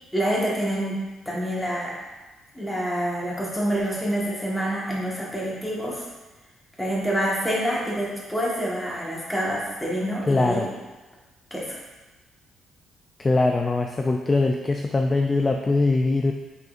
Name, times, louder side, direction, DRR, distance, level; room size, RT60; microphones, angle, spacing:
voice 1, 0.1-1.0 1.2-2.0 2.5-6.0 6.8-10.7 11.5-11.8, equal, 5° left, -5 dB, 1.4 m, -27 dB
voice 2, 10.3-10.7 13.2-16.3, left 3 dB, 25° left, 3 dB, 0.3 m, -22 dB
5.5 x 3.8 x 2.5 m, 1.2 s
cardioid pair, 90°, 0 cm